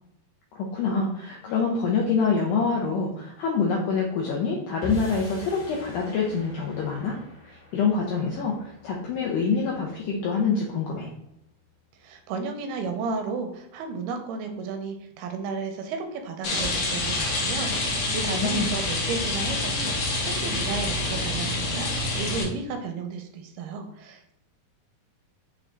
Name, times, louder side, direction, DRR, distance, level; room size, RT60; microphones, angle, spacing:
voice 1, 0.5-7.2 7.5-11.1 18.3-18.7, left 5 dB, 85° left, -2 dB, 1.8 m, -26 dB
sound 1, 4.8-11.2, equal, 35° left, 0.8 m, -42 dB
voice 2, 12.0-24.3, right 4 dB, 85° right, 5 dB, 2.5 m, -33 dB
Rain, 16.4-22.4, left 2 dB, 70° left, 1.6 m, -27 dB
6.4 x 2.5 x 3.3 m, 0.78 s
omnidirectional pair, 4.4 m